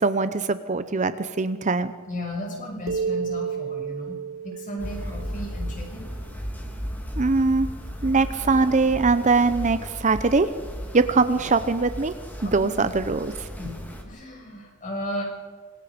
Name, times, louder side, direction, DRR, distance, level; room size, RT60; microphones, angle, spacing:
voice 1, 0.0-1.9 7.2-7.7 8.0-10.5 10.9-12.1 12.4-13.5, right 3 dB, 35° right, 12 dB, 0.7 m, -22 dB
voice 2, 2.1-4.2 4.4-6.1 12.4-12.8 13.6-13.8 14.0-15.2, left 1 dB, 40° left, 0 dB, 6.8 m, -34 dB
sound 1, 2.9-6.4, right 6 dB, 65° right, 1.2 m, -32 dB
sound 2, 4.8-14.0, equal, 10° left, 2.8 m, -35 dB
26.0 x 21.0 x 5.1 m, 1.5 s
head